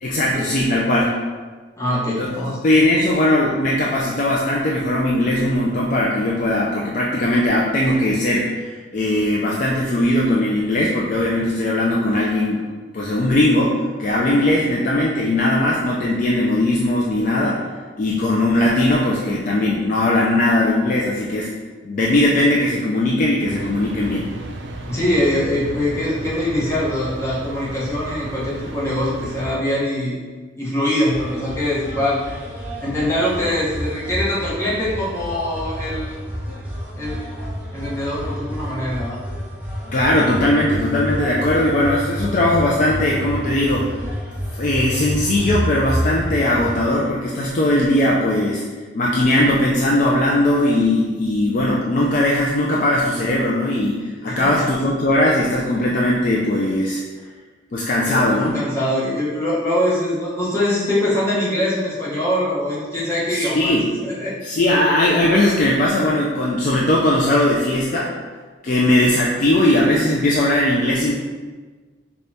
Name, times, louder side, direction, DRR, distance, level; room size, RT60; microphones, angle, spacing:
voice 1, 0.0-1.1 2.2-2.3 2.6-12.6 12.9-17.6 18.0-21.5 21.8-24.3 39.9-43.9 44.6-48.6 48.9-57.0 57.7-58.5 63.4-63.9 64.4-68.1 68.6-71.1, left 1 dB, 45° left, -4 dB, 0.4 m, -19 dB
voice 2, 1.8-2.6 24.9-30.1 30.6-32.2 32.8-36.1 37.0-39.2 54.3-54.6 58.1-58.2 58.5-63.8 64.0-64.3, left 1 dB, 15° left, -8 dB, 1.0 m, -23 dB
sound 1, 23.5-29.6, right 2 dB, 70° right, 0.4 m, -34 dB
sound 2, 31.1-46.9, equal, 10° right, 0.6 m, -29 dB
5.0 x 2.3 x 2.7 m, 1.4 s
head